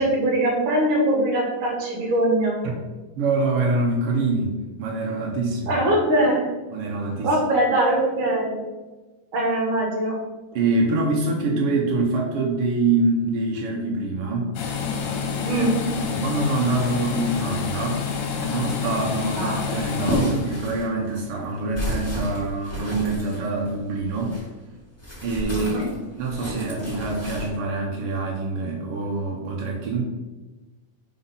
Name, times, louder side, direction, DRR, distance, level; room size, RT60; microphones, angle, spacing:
voice 1, 0.0-2.6 5.7-6.5 7.2-8.6 9.3-10.2 15.5-15.8 19.4-19.6 25.5-25.9, right 1 dB, 50° right, -2 dB, 1.9 m, -22 dB
voice 2, 3.2-5.8 6.7-7.4 10.5-14.6 15.5-15.7 16.0-18.1 18.4-24.4 25.2-25.9 26.2-30.0, right 3 dB, 85° right, -1 dB, 1.2 m, -25 dB
sound 1, 14.6-20.8, left 6 dB, 75° left, 2.2 m, -28 dB
sound 2, 19.7-24.5 25.0-27.5, equal, 5° left, 1.2 m, -31 dB
5.1 x 4.0 x 5.4 m, 1.2 s
omnidirectional pair, 3.9 m